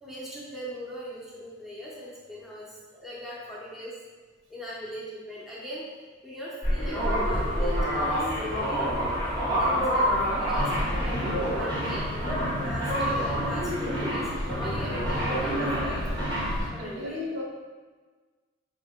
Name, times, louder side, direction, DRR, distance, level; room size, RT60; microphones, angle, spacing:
voice 1, 0.0-3.9 4.5-5.8 6.2-8.2 8.5-8.9 9.5-12.1 12.6-16.0 16.7-17.3, equal, ahead, -7 dB, 0.8 m, -40 dB
sound 1, 6.6-16.7, equal, 20° right, 1.2 m, -27 dB
voice 2, 16.8-17.4, left 2 dB, 85° right, -2 dB, 0.8 m, -35 dB
4.9 x 3.2 x 2.4 m, 1.4 s
head